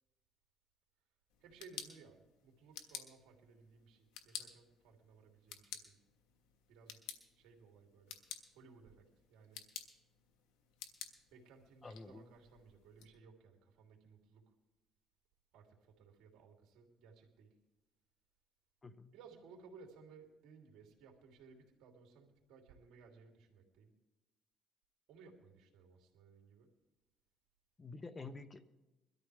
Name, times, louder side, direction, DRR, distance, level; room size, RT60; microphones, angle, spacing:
sound 1, 1.3-13.1, left 9 dB, 85° left, 1.4 m, -53 dB
voice 1, 1.4-6.0 6.7-7.0 7.4-8.1 8.5-9.0 9.3-9.6 11.3-14.4 15.5-17.5 19.1-23.9 25.1-26.7, right 5 dB, 75° right, 1 dB, 3.0 m, -60 dB
voice 2, 11.8-12.2 18.8-19.1 27.8-28.6, left 3 dB, 25° left, 12 dB, 0.9 m, -49 dB
22.0 x 13.0 x 3.5 m, 1.0 s
cardioid pair, 100°, 0 cm